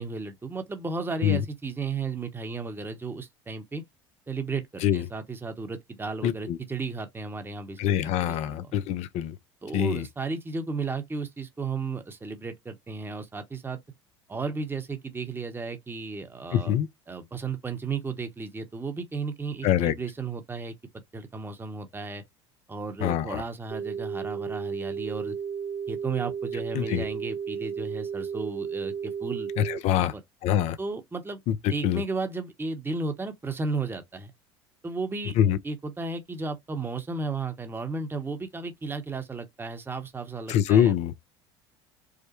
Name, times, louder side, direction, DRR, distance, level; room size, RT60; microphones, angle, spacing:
voice 1, 0.0-3.8 4.3-8.7 9.6-13.8 14.3-16.7 17.1-20.7 21.1-22.2 22.7-25.4 25.9-29.5 30.0-30.2 30.8-31.4 31.7-34.3 34.8-35.4 35.6-41.0, right 4 dB, 15° right, 0.9 m, -34 dB
voice 2, 6.2-6.6 7.8-9.3 9.7-10.0 16.5-16.9 19.6-19.9 23.0-23.4 26.8-27.0 29.6-30.1 30.4-30.8 31.8-32.0 35.4-35.6 40.5-41.1, left 10 dB, 55° left, 0.5 m, -24 dB
sound 1, 23.7-29.8, right 7 dB, 60° right, 1.6 m, -33 dB
4.8 x 2.1 x 3.0 m
hypercardioid pair, 75°, 14 cm